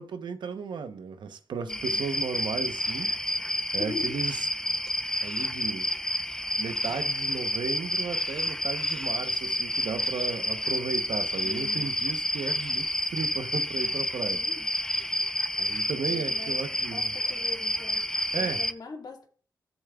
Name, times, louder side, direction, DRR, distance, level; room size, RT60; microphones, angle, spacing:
voice 1, 0.0-4.5 5.2-5.9 6.6-14.4 15.6-17.1 18.3-18.6, right 5 dB, 85° right, 0.8 m, -35 dB
voice 2, 1.6-2.1 3.8-4.2 11.4-11.9 14.3-14.7 15.9-18.1 18.3-19.3, left 4 dB, 65° left, 2.0 m, -42 dB
sound 1, 1.7-18.7, equal, 5° left, 0.7 m, -29 dB
13.5 x 7.1 x 2.3 m
cardioid pair, 75°, 8 cm